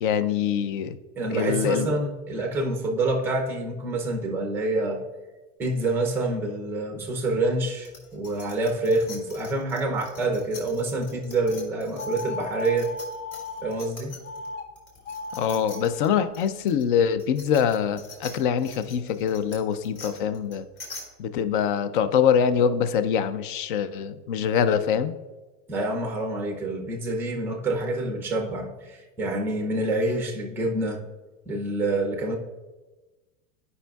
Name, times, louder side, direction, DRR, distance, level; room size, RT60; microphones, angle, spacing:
voice 1, 0.0-1.0 1.3-1.9 15.4-20.6 21.2-25.1, left 8 dB, 45° left, 12 dB, 0.4 m, -24 dB
voice 2, 1.2-5.0 5.6-12.9 13.6-14.1 25.7-31.0 31.5-32.4, right 2 dB, 5° right, 2 dB, 0.5 m, -27 dB
sound 1, 7.8-14.5 14.8-21.0, left 3 dB, 25° left, 2.3 m, -44 dB
sound 2, 12.0-13.8 14.2-14.6 15.0-15.8, left 3 dB, 65° left, 1.2 m, -36 dB
11.5 x 5.5 x 2.3 m, 1.2 s
supercardioid pair, 160°, 39 cm